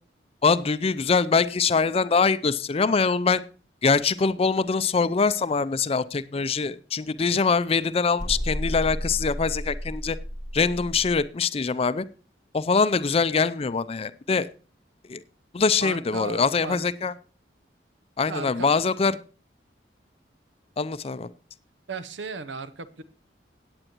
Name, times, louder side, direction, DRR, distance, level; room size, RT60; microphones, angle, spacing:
voice 1, 0.4-3.4 3.8-10.2 10.5-12.1 12.5-14.5 15.1-15.2 15.5-17.1 18.2-19.2 20.8-21.3, left 4 dB, 35° left, 15 dB, 0.4 m, -23 dB
sound 1, 8.2-11.3, equal, 45° right, 2.1 m, -32 dB
voice 2, 15.8-17.1 18.3-18.7 21.9-23.0, right 4 dB, 85° right, 13 dB, 0.8 m, -36 dB
17.0 x 8.8 x 3.0 m, 0.36 s
head